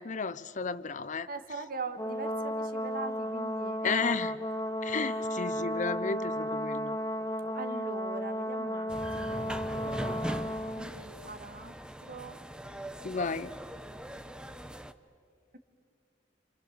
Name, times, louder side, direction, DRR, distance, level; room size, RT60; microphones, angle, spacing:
voice 1, 0.0-1.3 3.8-4.3 4.8-7.0 13.0-13.5, left 5 dB, 45° left, 15 dB, 0.7 m, -33 dB
voice 2, 1.3-4.0 5.0-5.4 7.5-8.9 9.2-12.4, right 3 dB, 55° right, 7 dB, 1.7 m, -42 dB
Brass instrument, 2.0-10.9, equal, 20° left, 1.1 m, -34 dB
sound 1, 8.9-14.9, equal, 5° right, 0.8 m, -40 dB
29.0 x 27.5 x 7.3 m, 2.1 s
head